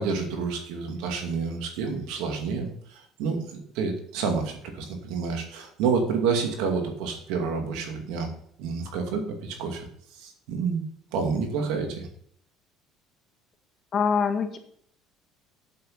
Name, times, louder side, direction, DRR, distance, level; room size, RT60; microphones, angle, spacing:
voice 1, 0.0-8.3 8.6-10.8 11.1-12.1, right 5 dB, 80° right, 3 dB, 2.4 m, -29 dB
voice 2, 13.9-14.6, left 6 dB, 40° left, 6 dB, 1.7 m, -24 dB
8.3 x 7.5 x 5.6 m, 0.65 s
supercardioid pair, 100°, 0 cm